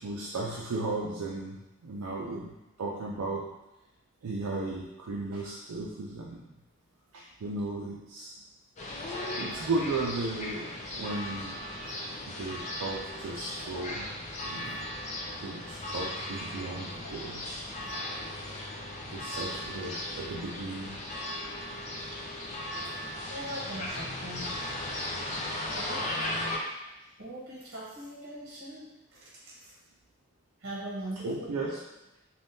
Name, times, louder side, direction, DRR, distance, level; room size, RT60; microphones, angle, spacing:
voice 1, 0.0-3.5 4.2-6.4 7.1-8.4 9.4-11.6 12.3-14.1 14.4-14.9 15.4-17.5 17.7-17.8 19.0-21.0 23.9-24.0 31.2-31.8, right 2 dB, 90° right, -4 dB, 0.4 m, -35 dB
sound 1, 8.8-26.6, left 1 dB, 30° left, 0.4 m, -37 dB
voice 2, 23.3-24.6 25.7-26.0 27.2-29.3 29.6-29.7 30.6-31.8, right 1 dB, 50° right, -6 dB, 0.9 m, -41 dB
3.4 x 2.3 x 2.6 m, 0.96 s
head